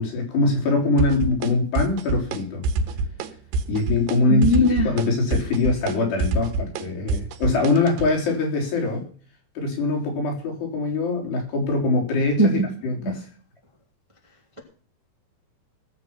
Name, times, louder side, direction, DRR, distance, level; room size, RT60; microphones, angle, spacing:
voice 1, 0.0-2.7 3.7-9.1 9.6-13.3, left 3 dB, 90° left, 0 dB, 5.6 m, -23 dB
sound 1, 1.0-1.5 1.8-2.4 2.6-3.3 3.5-4.2 4.4-8.1, right 3 dB, 85° right, 3.2 m, -25 dB
voice 2, 4.3-4.9 12.4-12.5 13.0-13.1, equal, 10° right, 2 dB, 1.7 m, -18 dB
19.0 x 7.4 x 5.6 m, 0.43 s
omnidirectional pair, 4.6 m